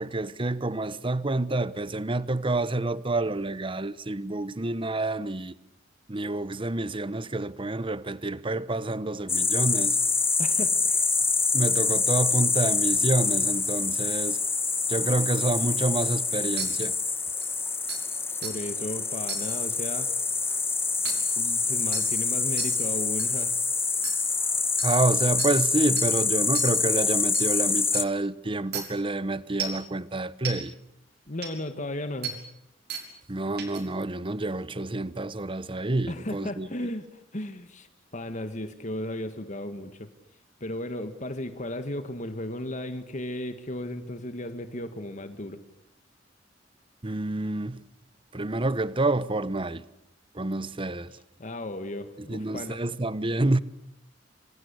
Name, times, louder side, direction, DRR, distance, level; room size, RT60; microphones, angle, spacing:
voice 1, 0.0-5.5 6.1-10.0 11.5-14.4 14.9-17.0 24.8-30.7 33.3-36.7 47.0-47.8 48.3-49.8 50.3-51.1 52.2-53.6, right 2 dB, 30° right, 1.0 m, -28 dB
sound 1, 9.3-28.0, left 4 dB, 15° left, 1.0 m, -26 dB
voice 2, 10.4-11.1 18.4-20.1 21.4-23.6 31.3-32.4 36.1-37.9 38.1-40.1 40.6-45.6 51.4-52.8, left 1 dB, 40° left, 1.8 m, -35 dB
sound 2, 16.6-16.7 17.4-17.5 17.9-18.0 18.4-18.5 19.3-19.4 21.0-21.1 21.9-22.0 22.6-22.7 23.2-23.3 24.0-24.1 24.8-24.9 25.4-25.5 26.0-26.1 26.5-26.7 27.3-27.4 27.9-28.0 28.7-28.8 29.6-29.8 30.4-30.5 31.4-31.5 32.2-32.3 32.9-33.0 33.6-33.8, right 8 dB, 60° right, 6.4 m, -33 dB
26.5 x 26.0 x 8.3 m
head